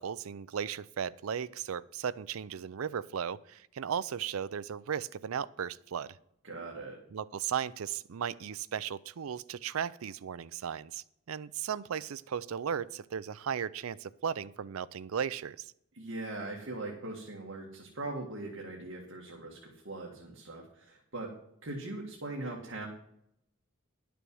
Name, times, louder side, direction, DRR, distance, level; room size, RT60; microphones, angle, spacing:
voice 1, 0.0-6.2 7.1-15.7, right 8 dB, 90° right, 17 dB, 0.4 m, -36 dB
voice 2, 6.4-7.0 15.9-21.3 21.6-22.9, right 2 dB, 65° right, -1 dB, 1.9 m, -40 dB
11.0 x 6.8 x 6.2 m, 0.76 s
head